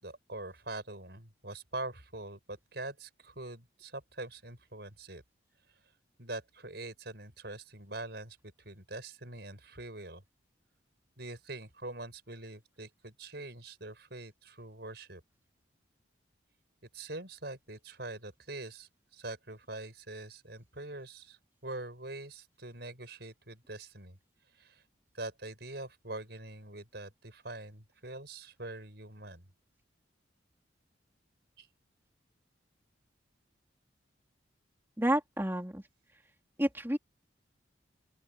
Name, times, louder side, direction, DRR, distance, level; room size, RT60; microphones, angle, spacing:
voice 1, 0.0-5.2 6.2-10.2 11.2-15.2 16.9-24.2 24.5-24.8 25.1-29.5 31.6-31.7, right 2 dB, 60° right, 5.9 m, -44 dB
voice 2, 35.0-35.8 36.6-37.0, right 1 dB, 10° right, 3.4 m, -30 dB
open air
head